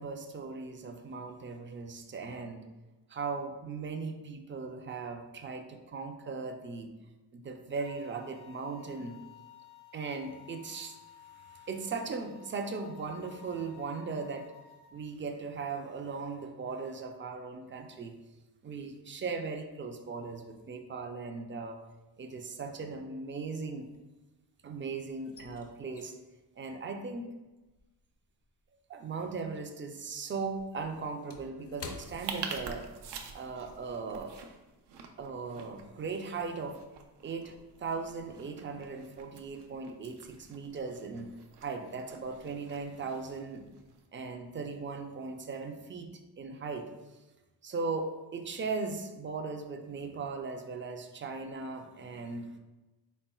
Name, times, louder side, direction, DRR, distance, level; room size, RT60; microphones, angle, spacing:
voice 1, 0.0-2.7 3.1-6.9 7.3-9.2 9.9-11.0 11.5-14.5 14.9-18.2 18.6-21.8 22.2-23.9 24.6-26.1 26.6-27.3 28.9-32.9 33.3-34.3 35.2-36.8 37.2-41.3 41.6-43.7 44.1-46.1 46.4-46.9 47.6-52.5, right 4 dB, 30° right, 6 dB, 0.4 m, -38 dB
sound 1, 7.7-14.9, left 9 dB, 75° left, 0.8 m, -54 dB
sound 2, 21.8-22.3 22.6-24.6 24.9-29.6 29.8-33.2 33.5-33.7 34.1-34.4, left 4 dB, 40° left, 0.4 m, -51 dB
sound 3, 31.9-44.1, right 5 dB, 80° right, 0.5 m, -47 dB
4.3 x 3.7 x 2.3 m, 1.1 s
cardioid pair, 105°, 40 cm